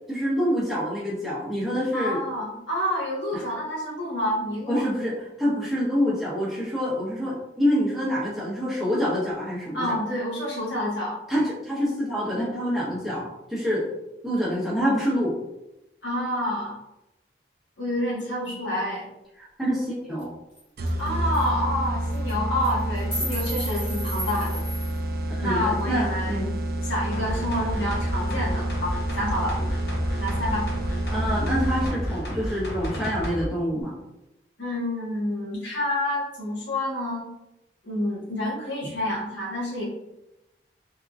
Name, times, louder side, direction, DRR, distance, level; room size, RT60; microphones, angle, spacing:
voice 1, 0.1-2.2 3.3-3.4 4.7-5.1 5.4-10.0 11.3-13.9 14.2-15.4 19.4-20.3 25.4-26.5 31.0-33.9, equal, ahead, -8 dB, 1.0 m, -26 dB
voice 2, 1.9-4.9 9.7-11.2 16.0-16.7 17.8-19.1 21.0-24.6 25.4-26.5 26.8-29.6 30.2-30.6 34.6-37.3 37.8-39.8, left 1 dB, 80° left, -5 dB, 1.4 m, -28 dB
sound 1, 20.2-20.3 20.6-20.7 20.9-21.1 21.3-21.5 22.1-22.3 22.6-25.0, right 1 dB, 25° left, 1.2 m, -34 dB
sound 2, 20.8-32.2, right 1 dB, 55° right, 0.4 m, -29 dB
sound 3, 27.1-33.5 33.8-33.9, equal, 65° left, 0.8 m, -32 dB
3.5 x 3.0 x 2.4 m, 0.92 s
head